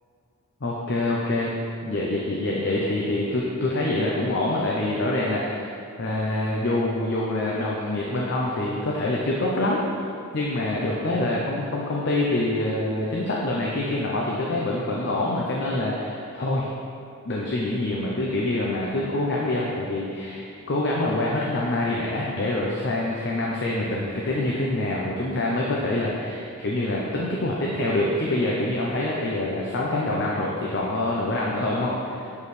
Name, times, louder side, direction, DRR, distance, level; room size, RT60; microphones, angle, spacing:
voice 1, 0.6-1.5 1.8-5.7 6.0-9.8 10.3-16.7 17.2-32.4, left 2 dB, 50° left, -4 dB, 0.6 m, -26 dB
7.2 x 4.6 x 3.2 m, 2.6 s
head